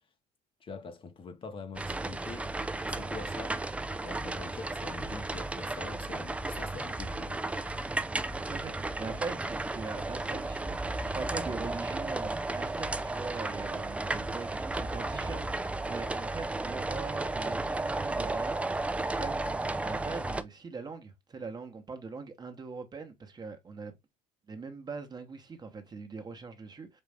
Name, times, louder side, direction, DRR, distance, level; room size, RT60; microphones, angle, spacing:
voice 1, 0.6-2.5 2.8-3.6 4.0-7.5, left 4 dB, 30° left, 0.7 m, -44 dB
sound 1, 1.7-20.4, right 2 dB, 10° right, 0.3 m, -34 dB
voice 2, 8.4-18.8 19.1-19.4 19.8-23.9 24.5-26.9, right 4 dB, 25° right, 1.0 m, -41 dB
5.3 x 2.4 x 3.3 m
supercardioid pair, 100°, 17 cm